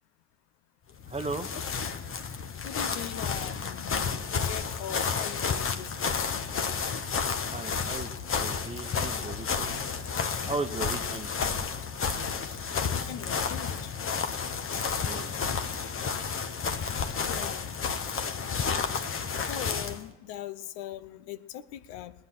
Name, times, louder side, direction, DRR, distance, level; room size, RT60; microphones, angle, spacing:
sound 1, 0.9-20.0, left 6 dB, 35° left, 1.2 m, -31 dB
voice 1, 1.1-1.5 7.5-8.1 8.4-9.8 10.5-11.3 15.0-15.3, right 3 dB, 15° right, 9 dB, 1.0 m, -36 dB
voice 2, 2.6-4.1 4.4-6.4 12.8-13.9 17.2-17.8 19.4-22.1, left 11 dB, 70° left, 13 dB, 0.7 m, -41 dB
17.5 x 9.9 x 5.9 m, 1.1 s
hypercardioid pair, 65°, 36 cm